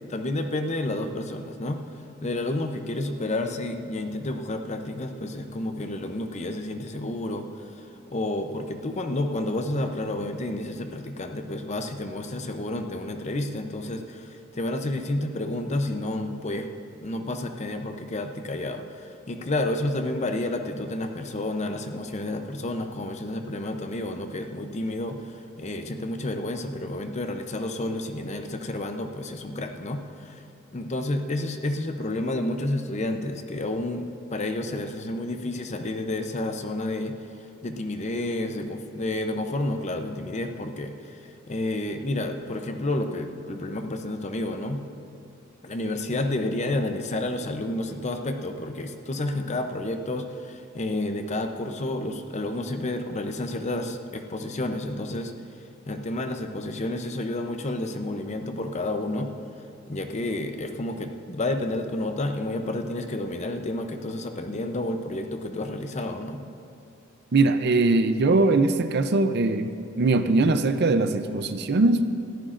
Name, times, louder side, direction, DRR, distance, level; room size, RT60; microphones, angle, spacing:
voice 1, 0.1-1.8 2.2-7.7 8.1-16.7 17.0-30.4 30.7-34.1 34.3-37.1 37.6-41.2 41.5-44.8 45.6-55.3 55.9-59.3 59.9-66.4, left 1 dB, 35° left, 6 dB, 0.7 m, -30 dB
voice 2, 67.3-69.7 70.0-72.1, right 3 dB, 50° right, 9 dB, 0.6 m, -21 dB
20.0 x 14.0 x 2.5 m, 2.6 s
head